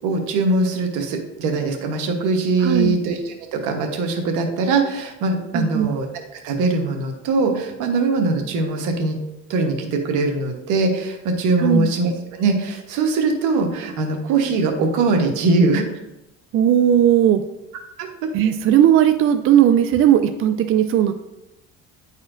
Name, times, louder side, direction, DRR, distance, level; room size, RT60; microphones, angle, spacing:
voice 1, 0.0-6.1 6.4-9.2 9.5-15.8 18.0-18.3, right 3 dB, 80° right, 3 dB, 1.1 m, -21 dB
voice 2, 2.6-2.9 5.5-5.9 11.6-11.9 16.5-17.4 18.3-21.1, right 10 dB, 45° right, 8 dB, 0.4 m, -16 dB
9.6 x 4.2 x 2.6 m, 0.94 s
cardioid pair, 100°, 30 cm